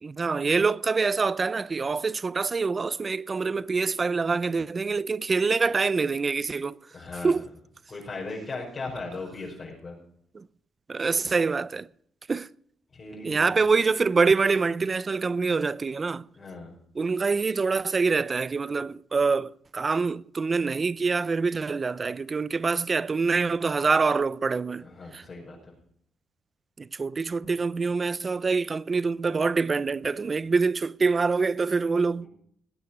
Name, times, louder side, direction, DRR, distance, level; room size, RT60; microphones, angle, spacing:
voice 1, 0.0-6.8 7.2-7.5 10.3-10.5 10.9-11.9 12.3-12.5 13.2-16.3 16.9-24.9 25.1-25.2 26.8-32.3, right 4 dB, 35° right, 0.6 m, -25 dB
voice 2, 6.9-7.4 7.9-9.9 12.9-13.5 16.4-16.7 24.8-25.6 27.4-27.6 32.2-32.3, left 3 dB, 35° left, 5.7 m, -38 dB
19.0 x 8.7 x 6.1 m
cardioid pair, 90°, 0 cm